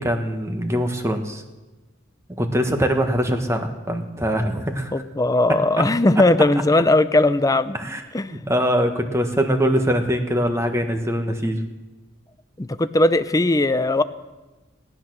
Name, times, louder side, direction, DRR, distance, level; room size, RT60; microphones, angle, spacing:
voice 1, 0.0-1.4 2.4-4.9 7.7-8.0 8.5-11.7, equal, 15° right, 5 dB, 1.3 m, -22 dB
voice 2, 4.9-7.8 8.1-8.4 12.6-14.0, left 2 dB, 15° left, 11 dB, 0.5 m, -18 dB
18.0 x 10.5 x 6.2 m, 1.1 s
head